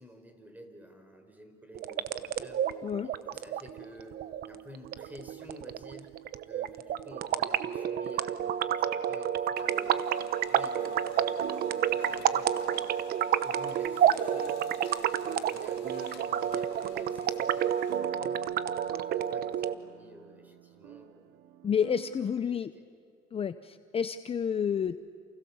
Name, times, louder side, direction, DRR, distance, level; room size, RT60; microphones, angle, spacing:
voice 1, 0.0-2.6 3.0-6.1 6.5-10.1 10.4-12.9 13.4-14.6 15.2-18.8 19.1-21.3 22.5-22.6, equal, 10° right, 6 dB, 4.5 m, -51 dB
sound 1, 1.7-19.7, right 9 dB, 65° right, 1.0 m, -30 dB
Printer, 7.9-9.1 9.4-19.0, left 8 dB, 85° left, 1.7 m, -54 dB
sound 2, 9.9-10.0 11.4-22.6, right 14 dB, 90° right, 1.1 m, -48 dB
voice 2, 21.6-22.7 23.3-25.0, left 7 dB, 35° left, 11 dB, 0.7 m, -30 dB
28.5 x 28.5 x 7.2 m, 2.3 s
cardioid pair, 110°, 17 cm